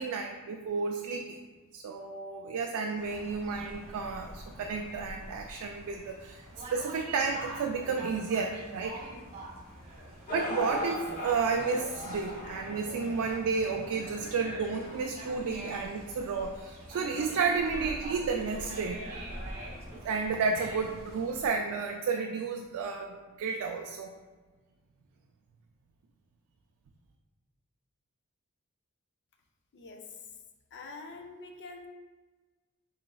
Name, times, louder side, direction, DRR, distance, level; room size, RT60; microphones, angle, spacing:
voice 1, 0.0-1.4 1.7-9.0 10.3-19.0 20.0-24.1, right 5 dB, 70° right, 2 dB, 0.3 m, -32 dB
sound 1, 2.9-21.5, equal, 5° left, 1.0 m, -49 dB
Conversation, 6.5-21.5, right 1 dB, 30° right, 0.7 m, -47 dB
sound 2, 10.3-16.5 17.2-17.3 18.0-18.1, left 1 dB, 35° left, 0.8 m, -40 dB
voice 2, 30.7-31.9, left 3 dB, 55° left, 4 dB, 0.4 m, -45 dB
4.0 x 3.8 x 2.2 m, 1.3 s
head